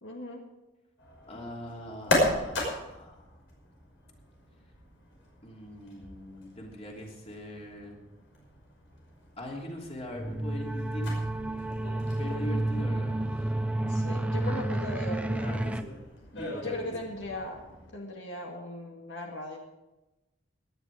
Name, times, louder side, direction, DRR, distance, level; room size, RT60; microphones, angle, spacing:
voice 1, 0.0-0.4 13.9-15.6 16.6-17.6 17.9-19.6, left 1 dB, 75° left, 1 dB, 1.9 m, -38 dB
sound 1, 1.0-17.9, left 1 dB, 90° left, 5.5 m, -37 dB
voice 2, 1.3-3.3 5.4-8.0 9.4-11.1 12.2-13.4 15.4-16.0 16.3-16.9, left 1 dB, 35° left, -1 dB, 3.1 m, -41 dB
sound 2, 10.1-15.8, right 1 dB, 5° right, 0.6 m, -30 dB
18.0 x 11.0 x 4.9 m, 1.0 s
head